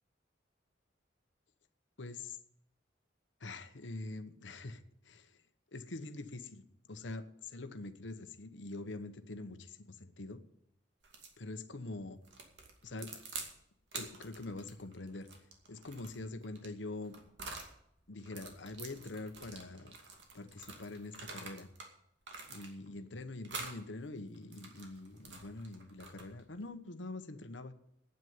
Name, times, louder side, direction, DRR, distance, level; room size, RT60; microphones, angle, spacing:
voice 1, 2.0-2.4 3.4-5.4 5.7-10.4 11.4-12.2 12.8-13.2 13.9-17.2 18.1-20.0 20.3-21.7 22.5-27.7, left 2 dB, 85° left, 10 dB, 1.0 m, -45 dB
sound 1, 11.0-11.4 12.2-13.5 13.9-17.7 18.2-21.9 22.2-23.0 23.4-23.8 24.3-26.5, right 4 dB, 70° right, 2.4 m, -47 dB
9.4 x 9.2 x 9.5 m, 0.76 s
head